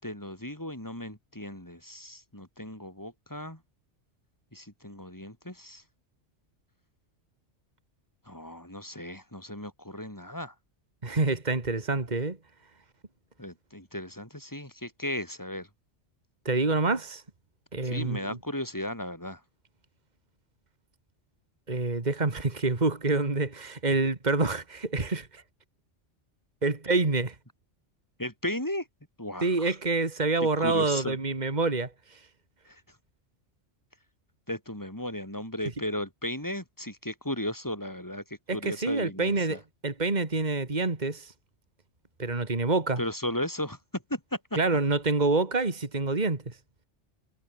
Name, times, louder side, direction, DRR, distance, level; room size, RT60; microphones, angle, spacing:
voice 1, 0.0-3.6 4.5-5.8 8.3-10.5 13.4-15.7 17.8-19.4 28.2-28.9 29.2-29.7 30.4-31.2 32.7-32.8 34.5-38.2 38.5-39.6 43.0-44.4, left 1 dB, 15° left, 4.9 m, -35 dB
voice 2, 11.0-12.4 16.4-17.2 17.7-18.4 21.7-25.4 26.6-27.3 29.4-31.9 38.5-41.3 42.2-43.0 44.6-46.4, right 3 dB, 35° right, 2.6 m, -27 dB
omnidirectional pair, 1.2 m